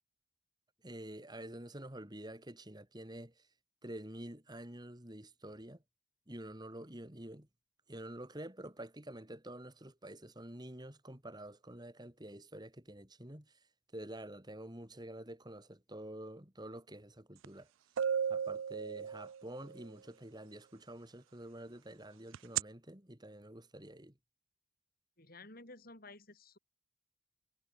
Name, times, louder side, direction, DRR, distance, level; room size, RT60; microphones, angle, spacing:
voice 1, 0.8-3.4 3.8-5.8 6.3-7.5 7.9-13.6 13.9-17.7 18.3-24.2, right 1 dB, 20° right, 2.8 m, -48 dB
sound 1, 17.4-17.5 18.0-19.7 22.3-22.6, right 7 dB, 75° right, 0.4 m, -34 dB
voice 2, 25.2-26.6, left 2 dB, 45° left, 7.8 m, -53 dB
head